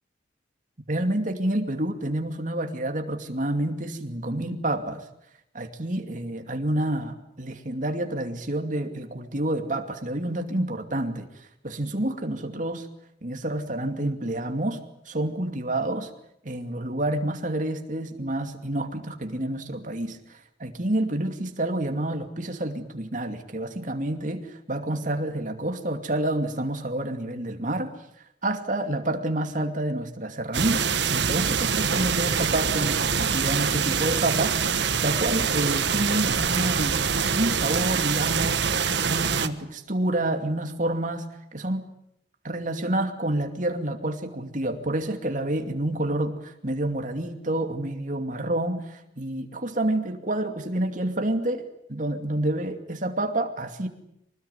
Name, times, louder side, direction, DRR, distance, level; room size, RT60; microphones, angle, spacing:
voice 1, 0.9-5.0 5.5-11.3 11.6-12.9 13.2-16.1 16.4-27.9 28.4-37.1 37.3-38.7 39.1-41.2 41.5-41.9 42.4-51.6 51.9-53.9, right 1 dB, 45° right, 5 dB, 2.6 m, -28 dB
sound 1, 30.5-39.5, right 6 dB, 70° right, 1.4 m, -25 dB
25.0 x 19.5 x 9.6 m, 0.78 s
head